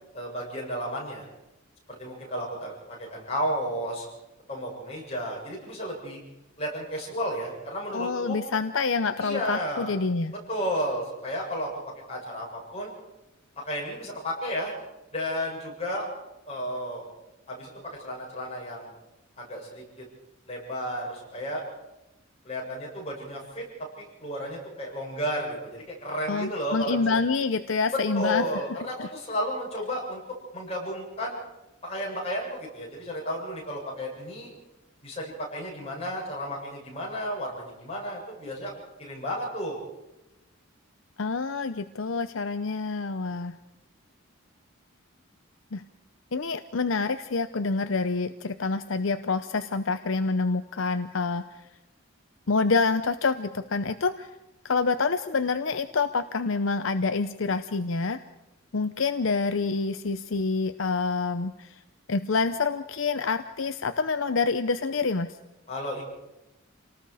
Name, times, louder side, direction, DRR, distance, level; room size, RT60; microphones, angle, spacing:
voice 1, 0.1-1.3 2.0-2.7 3.0-4.1 4.5-6.2 6.6-8.4 9.2-10.0 10.5-11.7 12.1-12.9 13.6-14.7 15.1-16.1 16.5-17.0 17.5-17.7 18.0-18.9 19.4-20.0 20.5-21.6 22.4-23.6 24.0-27.1 27.9-30.2 30.5-31.4 31.8-34.5 35.0-38.7 39.0-39.8 65.7-66.0, equal, 30° left, -3 dB, 7.6 m, -32 dB
voice 2, 7.9-10.3 26.3-28.5 29.0-29.1 41.2-43.6 45.7-45.8 46.3-51.4 52.5-54.3 54.6-58.2 58.7-61.8 62.1-65.3, left 4 dB, 70° left, 9 dB, 0.7 m, -27 dB
28.5 x 19.0 x 4.9 m, 0.96 s
head